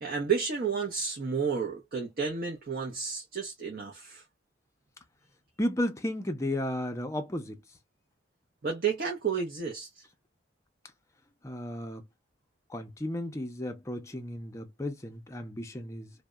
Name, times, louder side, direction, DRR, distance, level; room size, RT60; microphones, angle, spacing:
voice 1, 0.0-4.2 8.6-10.0, right 6 dB, 50° right, 0.6 m, -31 dB
voice 2, 5.6-7.6 11.4-12.0 12.7-16.1, left 1 dB, 15° left, 0.5 m, -34 dB
2.7 x 2.0 x 2.2 m
head